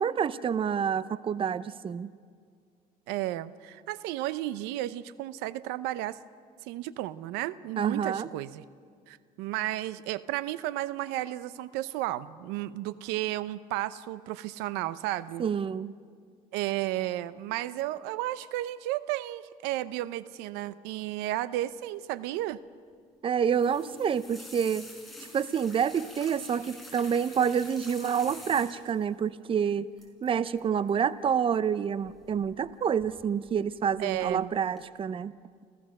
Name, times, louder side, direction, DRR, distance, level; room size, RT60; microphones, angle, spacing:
voice 1, 0.0-2.1 7.8-8.3 15.4-15.9 23.2-24.8 25.2-29.9 30.2-35.3, right 7 dB, 30° right, 16 dB, 0.6 m, -28 dB
voice 2, 3.1-6.2 6.6-8.6 9.1-15.4 16.5-22.6 34.0-34.5, right 15 dB, 85° right, 17 dB, 0.6 m, -33 dB
sound 1, 23.4-29.0 30.0-30.3 30.6-30.9 32.1-32.6 33.0-33.5 34.0-34.4 34.8-34.9, left 1 dB, ahead, 5.2 m, -47 dB
28.0 x 15.5 x 6.5 m, 2.1 s
cardioid pair, 100°, 17 cm